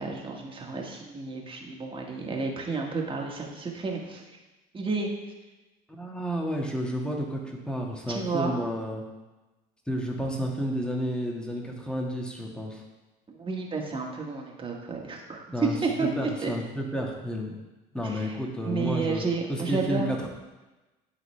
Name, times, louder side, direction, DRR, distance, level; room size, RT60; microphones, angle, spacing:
voice 1, 0.0-4.2 4.7-5.1 8.1-8.5 13.3-16.5 18.0-18.4 18.6-20.1, right 4 dB, 30° right, 0 dB, 1.6 m, -31 dB
voice 2, 5.9-9.0 9.9-12.8 15.5-17.5 17.9-19.2 19.5-20.3, equal, 5° left, 0 dB, 1.6 m, -31 dB
12.0 x 4.0 x 3.3 m, 1.1 s
supercardioid pair, 85°, 18 cm